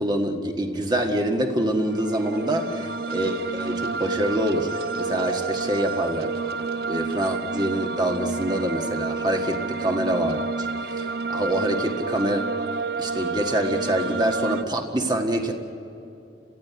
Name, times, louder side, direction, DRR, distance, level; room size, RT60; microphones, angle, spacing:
voice 1, 0.0-6.3 6.9-10.7 11.0-12.7 13.0-15.5, right 1 dB, 25° right, 3 dB, 1.6 m, -25 dB
sound 1, 1.8-14.6, right 4 dB, 60° right, 0.7 m, -30 dB
29.5 x 16.0 x 9.4 m, 2.7 s
head